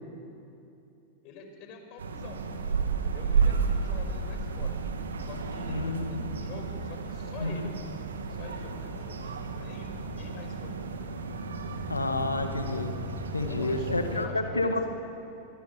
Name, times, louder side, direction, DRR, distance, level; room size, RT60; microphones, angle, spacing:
voice 1, 1.2-2.6 3.0-4.8 5.2-7.9 8.3-10.8 13.4-14.9, left 5 dB, 45° left, 5 dB, 5.4 m, -46 dB
sound 1, 2.0-14.3, right 4 dB, 75° right, 2.3 m, -32 dB
voice 2, 5.7-6.3 7.4-7.7 11.9-12.9 13.3-14.9, left 2 dB, 85° left, 7 dB, 2.1 m, -30 dB
28.0 x 21.0 x 8.6 m, 2.8 s
figure-of-eight pair, 90°, 0 cm